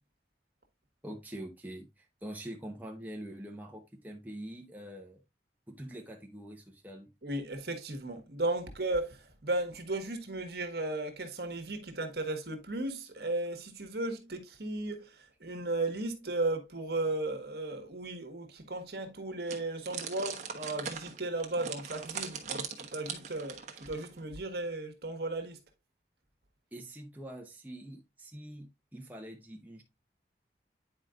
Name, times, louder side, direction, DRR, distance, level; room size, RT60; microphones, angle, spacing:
voice 1, 1.0-5.2 5.7-7.1 26.7-29.8, right 1 dB, 10° right, 0.8 m, -44 dB
voice 2, 7.2-25.6, right 2 dB, 65° right, 1.6 m, -35 dB
sound 1, 19.5-24.2, right 6 dB, 40° right, 1.2 m, -40 dB
9.7 x 4.8 x 2.5 m
head